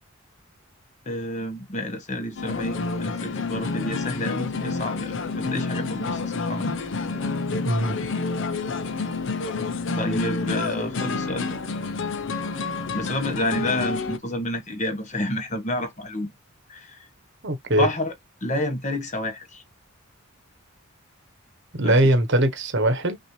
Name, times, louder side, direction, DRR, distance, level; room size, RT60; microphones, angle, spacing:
voice 1, 1.1-6.7 9.9-11.6 12.9-16.3 16.7-17.1 17.8-18.1 18.4-19.6 21.8-22.0, left 1 dB, 35° left, 1.1 m, -29 dB
sound 1, 2.4-14.2, left 4 dB, 55° left, 0.6 m, -29 dB
voice 2, 17.4-17.9 21.7-23.2, right 1 dB, 55° right, 1.1 m, -21 dB
5.8 x 2.7 x 3.1 m
head